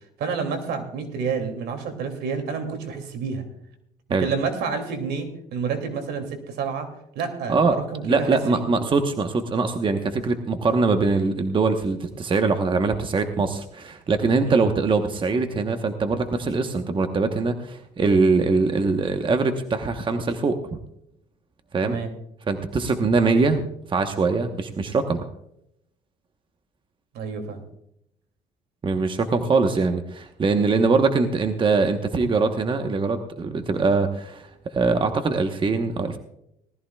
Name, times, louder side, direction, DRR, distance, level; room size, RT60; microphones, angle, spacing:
voice 1, 0.2-3.4 4.1-6.9 7.1-8.7 14.4-14.6 21.8-22.1 27.1-27.6 29.5-29.6, right 5 dB, 75° right, 5 dB, 2.6 m, -29 dB
voice 2, 7.5-20.6 21.7-22.0 22.5-25.2 28.8-36.2, right 4 dB, 30° right, 6 dB, 1.1 m, -22 dB
19.5 x 14.0 x 2.3 m, 0.78 s
cardioid pair, 110°, 17 cm